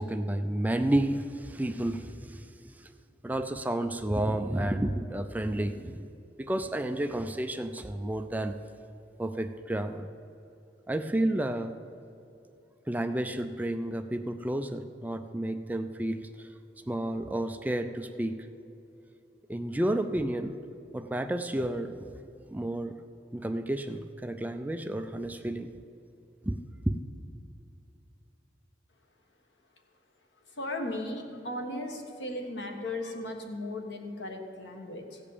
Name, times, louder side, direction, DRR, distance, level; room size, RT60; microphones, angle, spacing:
voice 1, 0.0-2.5 2.8-2.9 3.2-6.1 6.4-8.5 9.2-10.1 10.9-11.7 12.9-16.5 16.9-18.4 19.5-20.5 20.9-22.1 22.5-22.9 23.3-25.7 26.4-26.6 26.8-26.9, right 1 dB, 10° right, 8 dB, 0.4 m, -31 dB
voice 2, 30.5-35.2, left 1 dB, 90° left, 2 dB, 1.5 m, -36 dB
15.5 x 5.2 x 8.5 m, 2.7 s
head